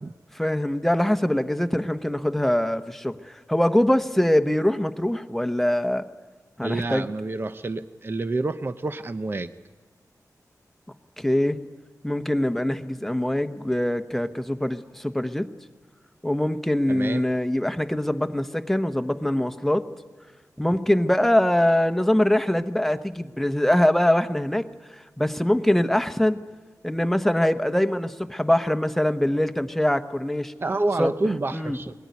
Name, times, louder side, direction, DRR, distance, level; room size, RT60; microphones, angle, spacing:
voice 1, 0.3-6.1 6.6-7.1 11.2-11.6 12.0-15.5 16.2-19.9 20.6-26.4 26.8-30.5 31.0-31.1 31.5-31.8, left 1 dB, 5° left, 9 dB, 1.0 m, -23 dB
voice 2, 6.6-9.5 16.9-17.2 30.6-31.9, right 2 dB, 35° right, 10 dB, 0.7 m, -28 dB
22.5 x 18.0 x 9.5 m, 1.3 s
wide cardioid pair, 85°, 7 cm